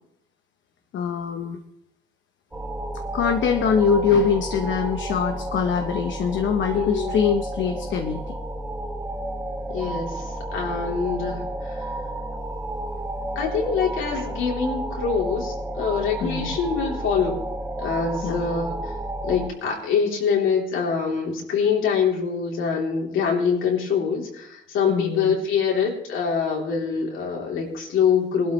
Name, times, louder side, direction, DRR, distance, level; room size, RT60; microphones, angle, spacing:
voice 1, 0.9-1.6 3.1-8.3 16.2-16.5 18.2-18.4 24.9-25.3, left 6 dB, 70° left, 6 dB, 0.9 m, -23 dB
sound 1, 2.5-19.5, right 1 dB, 10° right, 1.7 m, -31 dB
voice 2, 6.7-7.2 9.7-11.9 13.3-17.4 17.8-18.7 19.2-28.5, left 6 dB, 85° left, -1 dB, 3.3 m, -24 dB
19.5 x 12.0 x 3.2 m, 0.79 s
cardioid pair, 90°, 20 cm